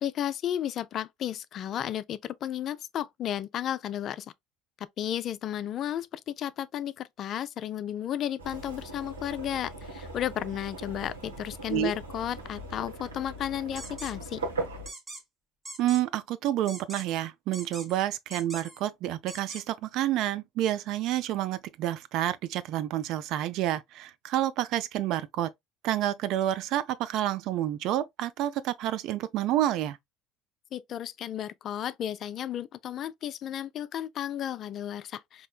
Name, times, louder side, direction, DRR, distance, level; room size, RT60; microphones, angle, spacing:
voice 1, 0.0-4.3 5.0-14.4 30.7-35.5, left 10 dB, 45° left, 0.3 m, -33 dB
sound 1, 8.4-14.9, right 2 dB, 85° right, 0.9 m, -39 dB
sound 2, 13.8-14.1 14.9-15.2 15.6-16.0 16.7-17.2 17.5-18.0 18.3-18.8 19.3-19.6, right 2 dB, 20° right, 1.2 m, -42 dB
voice 2, 15.8-25.5 25.8-30.0, right 13 dB, 55° right, 0.4 m, -29 dB
4.2 x 2.8 x 2.2 m
figure-of-eight pair, 65°, 0 cm